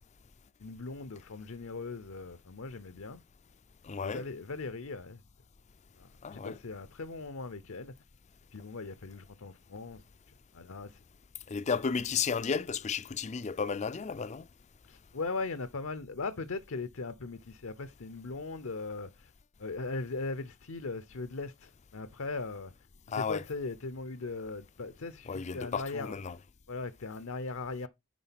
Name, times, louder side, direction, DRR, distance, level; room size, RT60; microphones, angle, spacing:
voice 1, 0.6-3.2 4.0-5.2 6.0-8.0 8.5-11.0 14.8-19.3 19.6-22.7 23.1-26.2 26.7-27.9, left 3 dB, 65° left, 0.8 m, -39 dB
voice 2, 3.9-4.2 6.2-6.6 11.5-14.4 23.1-23.4 25.3-26.4, left 5 dB, 30° left, 0.4 m, -33 dB
10.0 x 3.8 x 5.8 m
head